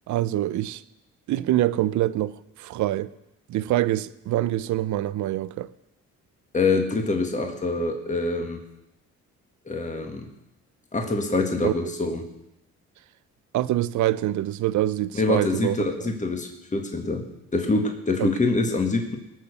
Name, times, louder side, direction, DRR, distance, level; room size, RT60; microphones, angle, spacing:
voice 1, 0.1-0.8 1.3-3.1 3.5-5.7 11.6-11.7 13.5-16.1 18.2-18.3, right 14 dB, 75° right, 0.6 m, -25 dB
voice 2, 6.5-8.6 9.7-10.3 10.9-12.2 15.1-17.3 17.5-19.2, left 3 dB, 25° left, 1.8 m, -25 dB
19.5 x 6.5 x 6.8 m
cardioid pair, 90°, 30 cm